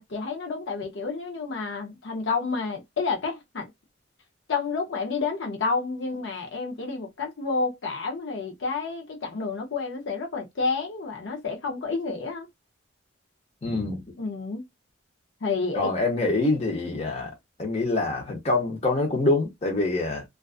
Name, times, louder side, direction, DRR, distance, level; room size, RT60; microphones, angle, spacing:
voice 1, 0.0-3.7 4.5-12.5 14.2-14.6 15.4-15.9, left 4 dB, 65° left, 0.6 m, -30 dB
voice 2, 13.6-14.0 15.7-17.3 17.6-20.2, left 2 dB, 30° left, 0.7 m, -25 dB
2.4 x 2.3 x 2.3 m
head